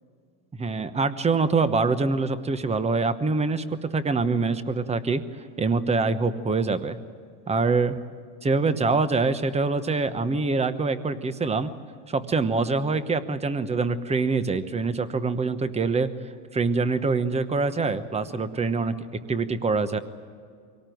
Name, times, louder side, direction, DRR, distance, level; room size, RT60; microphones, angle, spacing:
voice 1, 0.6-5.2 5.6-7.0 7.5-8.0 8.4-11.7 12.1-16.1 16.5-19.0 19.3-20.0, right 4 dB, 15° right, 12 dB, 1.1 m, -24 dB
24.5 x 18.5 x 9.3 m, 2.1 s
supercardioid pair, 120°, 46 cm